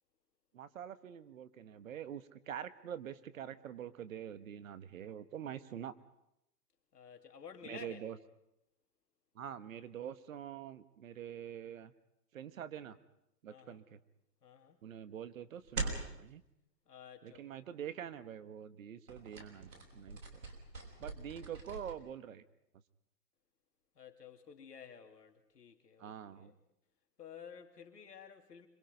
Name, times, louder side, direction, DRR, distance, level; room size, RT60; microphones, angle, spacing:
voice 1, 0.5-5.9 7.6-8.2 9.3-11.9 12.3-13.0 13.4-14.0 14.8-16.4 17.2-20.2 21.0-22.4 26.0-26.5, right 9 dB, 55° right, 1.4 m, -45 dB
voice 2, 6.9-8.0 13.5-13.8 14.4-14.8 16.9-17.4 23.9-26.6 27.2-28.7, left 7 dB, 70° left, 3.1 m, -53 dB
sound 1, 15.6-16.2 19.1-21.9, right 3 dB, 85° right, 6.0 m, -42 dB
26.0 x 26.0 x 5.4 m
hypercardioid pair, 140°, 49 cm